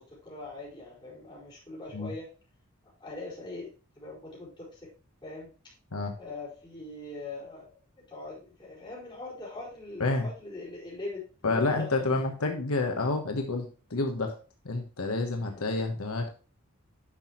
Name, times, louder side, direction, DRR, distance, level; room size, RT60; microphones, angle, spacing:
voice 1, 0.0-2.3 3.0-3.7 4.0-4.9 5.2-5.5 6.2-7.7 8.1-11.6 12.1-12.2 15.5-15.6, left 2 dB, 20° left, -6 dB, 4.5 m, -42 dB
voice 2, 11.4-14.3 14.6-16.3, left 3 dB, 85° left, 3 dB, 1.2 m, -29 dB
9.8 x 6.0 x 3.1 m, 0.34 s
head